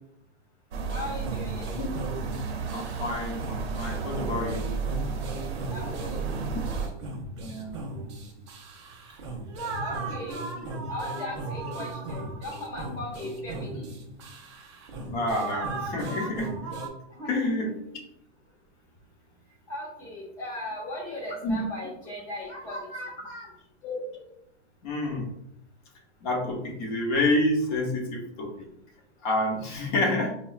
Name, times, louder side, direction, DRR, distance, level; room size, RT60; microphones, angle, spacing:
sound 1, 0.7-6.9, right 5 dB, 55° right, 0.7 m, -33 dB
voice 1, 0.9-1.8 2.3-3.0 5.5-6.6 7.1-15.2 17.1-18.0 18.2-23.6 24.8-24.9 28.4-29.2, left 1 dB, 10° left, -5 dB, 0.7 m, -40 dB
sound 2, 0.9-16.9, right 2 dB, 25° right, 0.3 m, -37 dB
voice 2, 2.7-4.6 7.4-7.8 15.0-16.7 17.3-17.7 21.4-21.6 23.8-24.2 24.8-25.3 26.2-28.7 29.2-30.3, left 1 dB, 40° left, 1 dB, 0.9 m, -28 dB
5.2 x 2.1 x 2.4 m, 0.77 s
hypercardioid pair, 155°, 36 cm